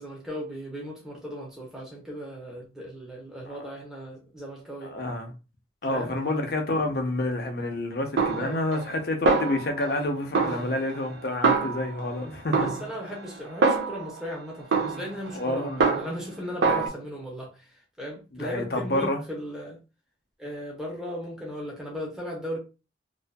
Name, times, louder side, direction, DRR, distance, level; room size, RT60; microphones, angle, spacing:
voice 1, 0.0-4.9 5.9-6.1 8.4-8.6 10.4-10.6 12.5-19.8 20.4-22.6, equal, 5° right, 0.7 m, -37 dB
voice 2, 4.8-5.3 5.8-12.7 15.3-15.9 16.6-16.9 18.3-19.2, left 1 dB, 60° left, 0.6 m, -29 dB
Snare drum, 8.2-9.0 9.3-10.0 10.3-12.1 12.5-14.2 14.7-16.3 16.6-16.9, right 4 dB, 85° right, 0.5 m, -25 dB
2.5 x 2.4 x 2.2 m
head